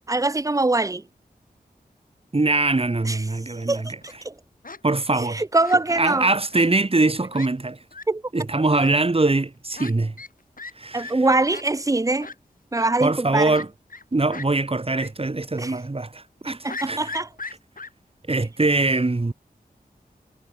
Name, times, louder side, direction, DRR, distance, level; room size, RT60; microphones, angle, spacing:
voice 1, 0.1-1.1 3.0-4.4 5.1-6.3 8.1-8.2 10.9-12.3 12.7-13.5 15.6-15.7 16.5-17.3, right 2 dB, 20° right, 0.6 m, -23 dB
voice 2, 2.3-3.9 4.8-5.4 6.0-7.8 8.3-10.1 10.8-11.2 13.0-13.7 14.1-17.0 18.3-19.3, right 2 dB, 35° right, 2.9 m, -22 dB
Fowl, 3.8-4.2 4.6-4.8 5.6-6.1 6.5-6.7 7.0-7.1 7.3-7.5 7.9-8.0 8.8-8.9 9.8-9.9 10.2-10.3 10.6-10.7 11.0-11.1 11.5-11.6 12.2-12.4 12.8-12.9 13.5-14.0 14.3-14.5 15.0-15.1 15.4-15.5 16.7-17.9, left 3 dB, 60° left, 6.1 m, -37 dB
wide cardioid pair, 55°, 16 cm